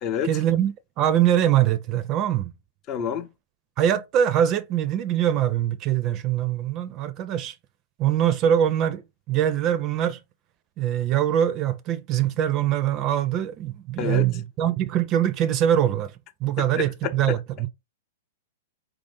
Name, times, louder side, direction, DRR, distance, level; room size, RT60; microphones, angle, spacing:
voice 1, 0.2-2.5 3.8-7.5 8.0-9.0 9.3-10.2 10.8-16.1 16.4-17.7, right 10 dB, 35° right, 0.5 m, -23 dB
voice 2, 2.9-3.3 14.0-14.3 16.6-17.4, left 8 dB, 35° left, 0.7 m, -28 dB
4.5 x 2.6 x 3.9 m
hypercardioid pair, 110°, 0 cm